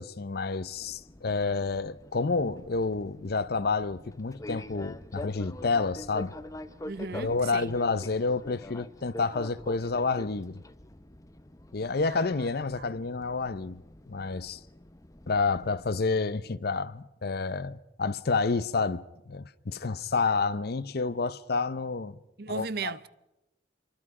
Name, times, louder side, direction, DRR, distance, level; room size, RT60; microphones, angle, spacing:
voice 1, 0.0-6.3 7.2-10.6 11.7-13.8 14.1-14.6 15.3-22.2 22.5-22.9, left 4 dB, 60° left, 0.7 m, -29 dB
Fixed-wing aircraft airplane, 0.6-16.0, left 1 dB, 20° left, 0.8 m, -46 dB
voice 2, 6.8-7.8 12.1-12.3 12.8-12.9 22.4-23.1, right 4 dB, 65° right, 0.7 m, -36 dB
28.0 x 23.5 x 4.9 m
head